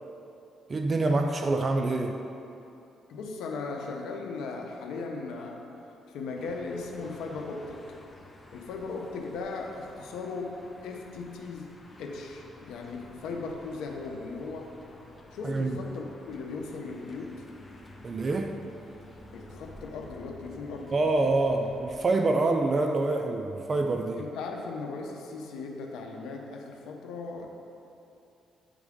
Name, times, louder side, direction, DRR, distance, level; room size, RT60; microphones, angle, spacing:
voice 1, 0.7-2.2 15.4-15.8 18.0-18.5 20.9-24.2, right 2 dB, 40° right, 4 dB, 0.4 m, -26 dB
voice 2, 3.1-5.7 6.1-7.9 8.5-14.7 15.3-17.4 19.3-21.0 24.2-27.5, left 3 dB, 85° left, 2 dB, 0.7 m, -37 dB
sound 1, 6.3-22.1, left 1 dB, 20° left, 0.8 m, -51 dB
9.9 x 3.5 x 3.6 m, 2.8 s
cardioid pair, 90°, 0 cm